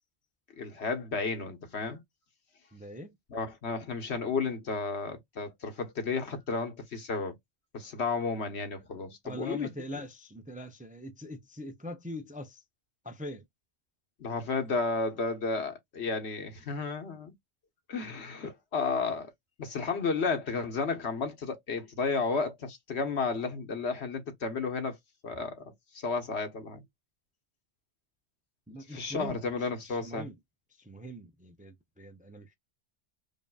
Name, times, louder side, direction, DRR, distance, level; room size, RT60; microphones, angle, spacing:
voice 1, 0.6-2.0 3.3-7.3 7.7-9.7 14.2-17.3 17.9-19.3 19.6-25.0 25.2-25.6 25.9-26.8 28.9-30.3, left 4 dB, 80° left, 1.5 m, -32 dB
voice 2, 2.7-3.2 9.2-12.6 13.0-13.4 28.7-29.4 29.8-30.4 30.8-32.6, left 1 dB, 10° right, 0.4 m, -42 dB
5.3 x 2.6 x 2.3 m
omnidirectional pair, 1.1 m